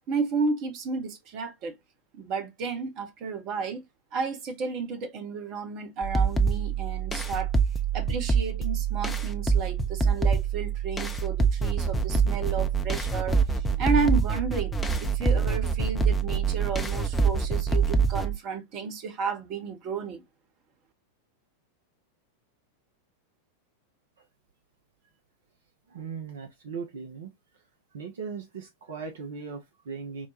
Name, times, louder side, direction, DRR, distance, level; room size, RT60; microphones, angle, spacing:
voice 1, 0.1-1.7 2.1-3.8 4.1-7.5 7.9-20.2, right 5 dB, 40° right, 0.9 m, -32 dB
sound 1, 6.0-18.4, right 5 dB, 10° left, 0.5 m, -25 dB
voice 2, 25.9-27.3 27.9-30.3, right 5 dB, 60° right, 0.6 m, -38 dB
4.4 x 2.2 x 2.7 m
figure-of-eight pair, 90°, 0 cm